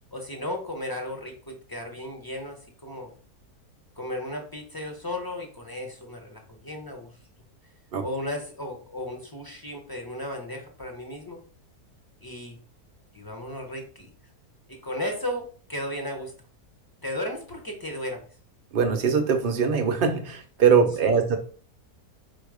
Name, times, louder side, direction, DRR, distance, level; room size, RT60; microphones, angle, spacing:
voice 1, 0.1-3.1 4.0-7.2 8.0-11.4 12.2-12.6 13.1-14.1 14.7-16.3 17.0-18.2 21.0-21.2, left 1 dB, 25° left, 2 dB, 0.5 m, -35 dB
voice 2, 18.7-21.4, right 6 dB, 60° right, 5 dB, 0.6 m, -22 dB
4.7 x 2.3 x 4.8 m, 0.41 s
omnidirectional pair, 1.7 m